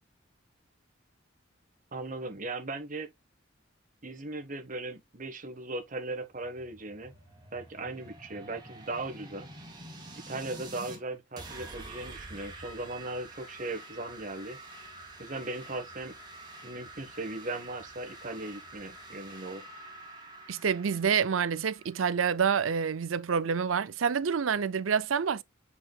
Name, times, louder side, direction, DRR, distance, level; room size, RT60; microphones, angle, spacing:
voice 1, 1.9-3.1 4.0-7.1 7.5-9.5 10.1-14.6 15.2-16.1 16.6-19.7, right 2 dB, 40° right, 1.4 m, -38 dB
sound 1, 6.4-11.0 11.4-22.9, right 2 dB, 20° right, 2.3 m, -48 dB
voice 2, 20.5-25.4, right 6 dB, 90° right, 0.5 m, -27 dB
7.9 x 4.9 x 2.4 m
head